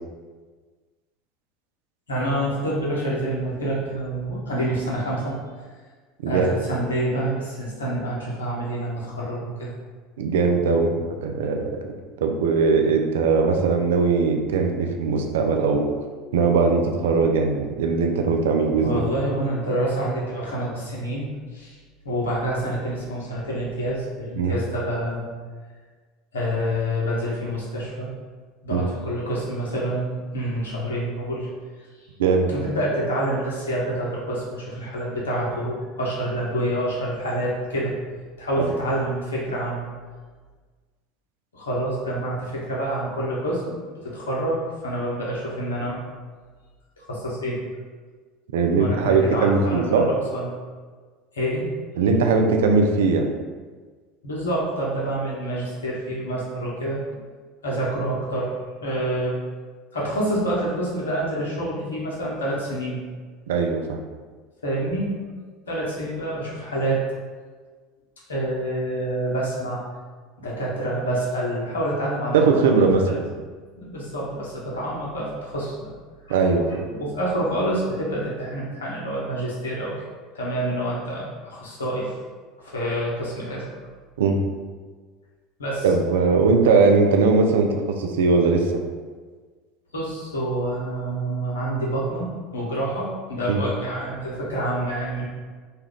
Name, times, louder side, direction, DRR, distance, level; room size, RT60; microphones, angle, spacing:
voice 1, 2.1-5.4 6.2-9.7 18.8-21.3 21.5-21.8 22.0-25.3 26.3-28.1 28.6-31.5 31.8-32.1 32.5-38.0 38.4-39.8 41.5-46.0 47.0-47.6 48.7-50.5 51.3-51.7 54.2-57.0 57.6-58.5 58.8-59.4 59.9-63.0 64.6-65.2 65.7-67.0 68.3-69.8 70.4-72.7 73.1-73.2 73.8-75.9 76.3-76.4 76.7-79.9 80.3-82.1 82.6-83.7 85.6-85.9 89.9-95.2, right 1 dB, 80° left, -5 dB, 0.8 m, -27 dB
voice 2, 10.2-11.9 12.2-15.9 16.3-19.0 24.4-24.5 28.7-28.9 32.2-32.5 48.5-50.1 52.0-53.3 63.5-64.0 72.3-73.2 76.3-76.8 84.2-84.4 85.8-87.7 88.0-88.7 93.5-93.6, right 4 dB, 70° right, 3 dB, 0.3 m, -20 dB
2.7 x 2.3 x 3.4 m, 1.5 s
figure-of-eight pair, 75°, 0 cm